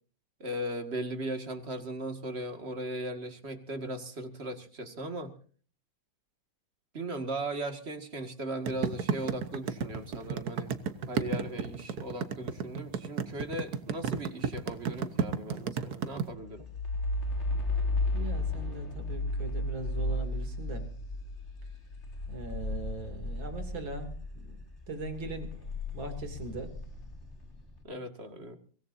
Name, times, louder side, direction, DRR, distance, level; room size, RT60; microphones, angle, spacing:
voice 1, 0.4-5.3 6.9-10.7 11.1-16.7 27.8-28.6, right 1 dB, 35° right, 7 dB, 2.2 m, -38 dB
sound 1, 8.7-16.2, right 6 dB, 60° right, 1.6 m, -31 dB
sound 2, 16.4-24.6 25.0-27.6, left 2 dB, 35° left, 3.1 m, -34 dB
voice 2, 18.1-20.9 22.3-26.7, right 2 dB, 80° right, 7 dB, 3.5 m, -40 dB
24.0 x 18.5 x 2.7 m, 0.41 s
omnidirectional pair, 2.1 m